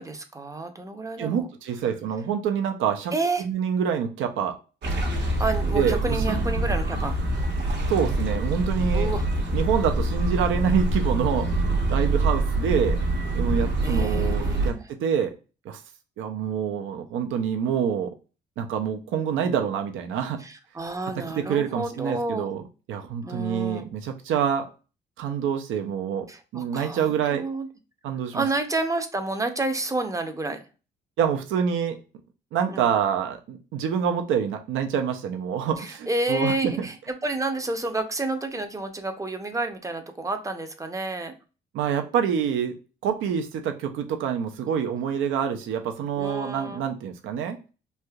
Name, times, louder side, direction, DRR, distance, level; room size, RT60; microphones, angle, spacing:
voice 1, 0.0-1.5 3.1-3.5 5.4-7.5 8.9-9.3 13.8-14.8 20.4-22.5 23.2-23.9 26.3-27.7 28.3-30.6 32.7-32.8 35.8-41.3 46.2-46.8, right 2 dB, 15° right, 7 dB, 0.5 m, -30 dB
voice 2, 1.2-3.1 3.4-4.6 5.7-6.2 7.9-9.1 9.5-13.0 13.3-15.3 15.6-15.8 16.2-18.1 18.6-20.4 21.2-22.6 22.9-24.7 25.2-26.3 26.5-27.4 28.0-28.4 31.2-32.0 32.5-36.9 41.7-42.8 43.0-47.6, right 7 dB, 85° right, 5 dB, 0.5 m, -26 dB
sound 1, 4.8-14.7, right 2 dB, 65° right, 1.1 m, -25 dB
3.3 x 2.6 x 2.2 m, 0.33 s
cardioid pair, 90°, 20 cm